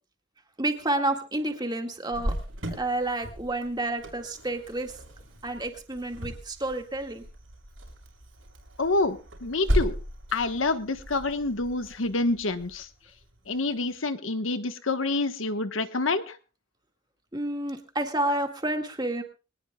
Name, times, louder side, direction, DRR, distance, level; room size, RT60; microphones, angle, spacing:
voice 1, 0.6-2.3 2.7-5.0 5.4-7.2 17.3-19.2, right 1 dB, 20° right, 4 dB, 2.0 m, -30 dB
Cricket, 2.1-13.6, equal, 80° right, 6.3 m, -36 dB
voice 2, 8.8-9.9 10.3-12.9 13.5-16.4, left 3 dB, 80° left, 9 dB, 1.3 m, -27 dB
23.5 x 18.5 x 2.4 m, 0.34 s
head